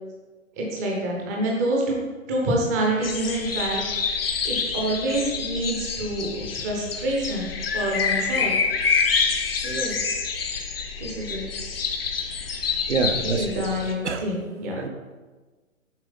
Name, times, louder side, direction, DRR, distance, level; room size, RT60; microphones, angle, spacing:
voice 1, 0.6-2.0 2.3-3.8 4.1-8.5 9.5-10.1 11.0-11.4 13.2-14.8, right 1 dB, 15° right, -2 dB, 0.7 m, -27 dB
Outdoor ambience Blackbird in focus, 3.0-13.9, left 5 dB, 45° left, 0.7 m, -27 dB
voice 2, 12.9-13.7 14.0-14.2 14.8-14.9, right 4 dB, 55° right, 6 dB, 0.7 m, -25 dB
7.1 x 4.7 x 3.8 m, 1.3 s
figure-of-eight pair, 130°, 41 cm